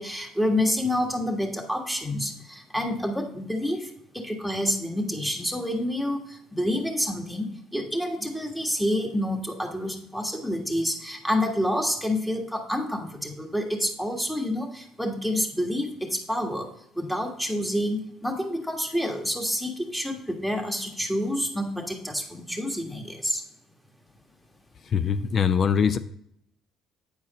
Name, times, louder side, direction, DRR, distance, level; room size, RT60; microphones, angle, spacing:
voice 1, 0.0-3.9 4.1-6.2 6.5-7.5 7.7-15.9 16.3-16.7 17.0-23.4, left 1 dB, 5° left, 2 dB, 1.6 m, -28 dB
voice 2, 24.9-26.0, left 7 dB, 45° left, 13 dB, 0.4 m, -22 dB
8.8 x 4.7 x 4.2 m, 0.72 s
supercardioid pair, 85°, 0 cm